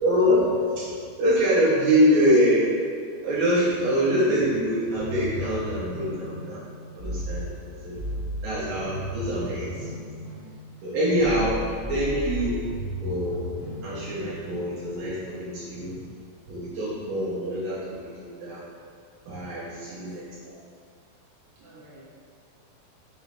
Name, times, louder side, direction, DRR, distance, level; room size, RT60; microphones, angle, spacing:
voice 1, 0.0-2.7 3.2-6.6 7.0-7.5 7.8-8.0 8.4-9.9 10.8-11.6 11.9-12.6 13.0-13.4 13.8-16.0 16.5-18.6 19.3-20.2, equal, 70° right, -9 dB, 2.8 m, -24 dB
sound 1, 5.0-14.7, left 1 dB, 60° left, 1.9 m, -35 dB
voice 2, 19.7-20.2 20.5-20.6 21.6-22.0, right 2 dB, 55° right, -8 dB, 2.4 m, -52 dB
6.4 x 5.4 x 3.2 m, 2.2 s
omnidirectional pair, 4.8 m